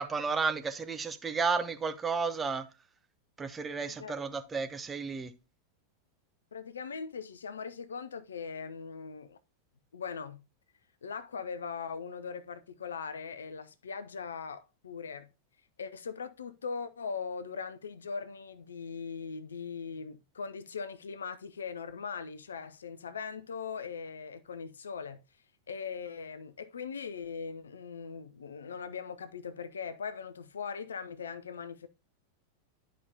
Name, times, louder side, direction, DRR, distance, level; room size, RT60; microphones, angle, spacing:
voice 1, 0.0-2.6 3.4-5.3, right 5 dB, 15° right, 0.8 m, -32 dB
voice 2, 6.5-9.4 9.9-10.4 11.0-15.3 15.8-25.2 25.7-31.9, left 5 dB, 70° left, 0.6 m, -40 dB
11.0 x 5.1 x 2.8 m
figure-of-eight pair, 90°, 0 cm